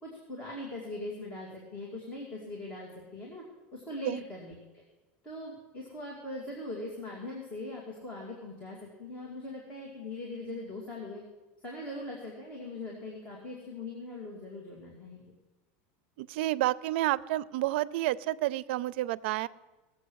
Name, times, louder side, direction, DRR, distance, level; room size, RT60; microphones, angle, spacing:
voice 1, 0.0-3.4 3.7-4.8 5.2-11.2 11.6-15.3, left 2 dB, 20° left, -2 dB, 2.4 m, -41 dB
voice 2, 16.2-19.5, right 16 dB, 70° right, 20 dB, 0.4 m, -30 dB
18.0 x 7.7 x 6.3 m, 1.2 s
supercardioid pair, 160°, 6 cm